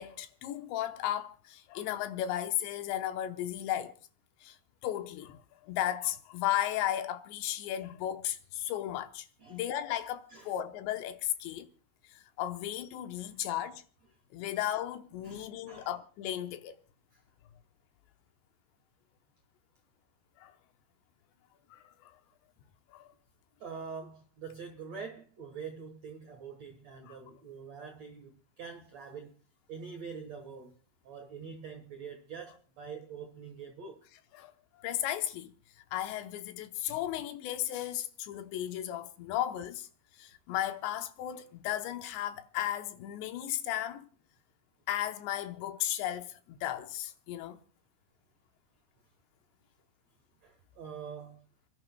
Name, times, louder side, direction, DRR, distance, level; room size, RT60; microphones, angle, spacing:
voice 1, 0.0-3.9 4.4-4.6 4.8-11.7 12.0-13.8 14.3-16.8 20.4-20.5 21.7-22.2 22.9-23.1 27.1-27.2 34.3-34.5 34.8-35.5 35.9-39.9 40.2-44.1 44.9-47.6, left 12 dB, 80° left, 3.0 m, -35 dB
voice 2, 13.2-13.5 14.4-14.5 15.2-15.9 17.1-17.2 23.6-29.3 29.7-30.8 31.0-34.0 50.4-51.4, right 6 dB, 70° right, 1.6 m, -45 dB
30.0 x 11.0 x 2.2 m
omnidirectional pair, 5.2 m